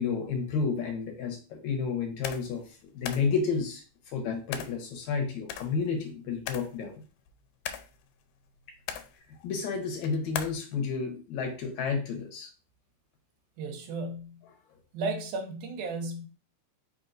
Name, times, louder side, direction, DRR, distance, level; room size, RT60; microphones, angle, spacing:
voice 1, 0.0-7.0 9.3-12.5, left 5 dB, 70° left, 3 dB, 2.1 m, -31 dB
sound 1, 2.2-2.6 3.1-3.3 4.5-4.8 5.5-6.1 6.5-6.8 7.3-8.1 8.7-9.2 10.0-10.6, left 9 dB, 90° left, 2.1 m, -37 dB
voice 2, 13.6-14.4 14.9-16.3, right 3 dB, 80° right, 5 dB, 2.1 m, -34 dB
4.8 x 4.3 x 2.5 m, 0.36 s
omnidirectional pair, 3.6 m